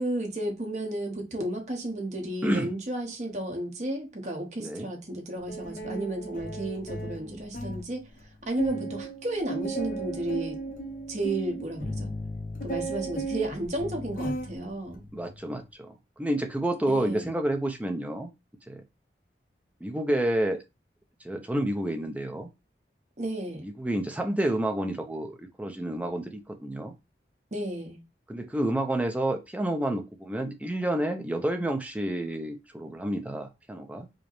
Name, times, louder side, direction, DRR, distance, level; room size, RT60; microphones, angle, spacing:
voice 1, 0.0-8.0 8.4-10.6 11.1-12.1 12.6-15.0 16.9-17.3 23.2-23.6 27.5-28.0, right 1 dB, 40° right, 1.0 m, -32 dB
sound 1, 5.5-7.9 8.2-8.3 8.6-14.6 14.9-15.3, right 2 dB, 50° left, 0.6 m, -35 dB
voice 2, 15.1-18.3 18.7-18.8 19.8-20.6 21.2-22.5 23.6-26.9 28.3-34.1, right 1 dB, 10° right, 0.4 m, -29 dB
4.9 x 2.0 x 3.0 m
head